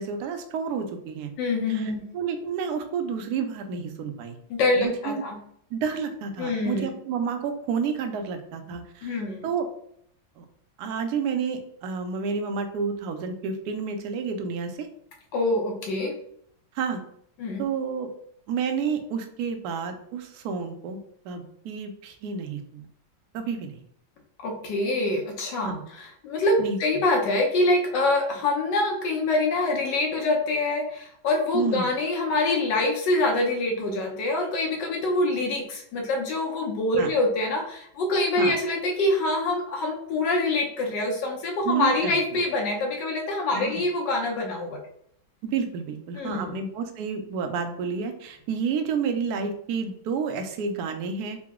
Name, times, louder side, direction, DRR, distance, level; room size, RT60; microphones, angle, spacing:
voice 1, 0.0-1.3 1.7-4.4 4.7-5.2 5.7-9.7 10.4-10.5 10.8-14.9 16.7-17.0 17.6-18.1 18.5-21.0 21.2-22.8 23.3-23.7 25.6-25.8 26.6-26.8 31.5-31.9 37.0-37.1 38.4-38.5 41.6-42.1 43.5-43.8 45.4-51.4, right 6 dB, 70° right, 6 dB, 1.0 m, -30 dB
voice 2, 1.4-2.0 4.5-5.4 6.4-6.9 9.0-9.5 15.3-16.1 17.4-17.6 24.4-44.8 46.1-46.5, left 2 dB, 70° left, 1 dB, 1.4 m, -25 dB
3.8 x 2.0 x 3.5 m, 0.67 s
omnidirectional pair, 2.0 m